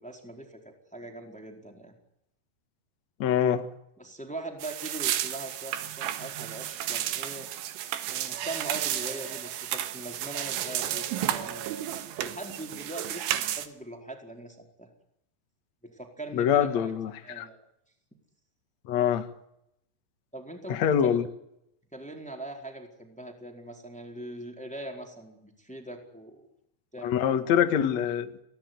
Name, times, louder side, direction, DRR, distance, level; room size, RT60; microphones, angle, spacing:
voice 1, 0.0-1.9 4.0-7.5 8.1-11.7 12.2-14.9 15.8-16.9 17.2-17.6 20.3-21.2 21.9-26.4 26.9-27.2, right 1 dB, ahead, 3.7 m, -41 dB
voice 2, 3.2-3.7 16.3-17.5 18.9-19.3 20.7-21.2 27.0-28.4, left 9 dB, 55° left, 2.2 m, -25 dB
sound 1, 4.6-13.7, right 12 dB, 90° right, 4.0 m, -32 dB
29.0 x 17.5 x 9.6 m
omnidirectional pair, 5.5 m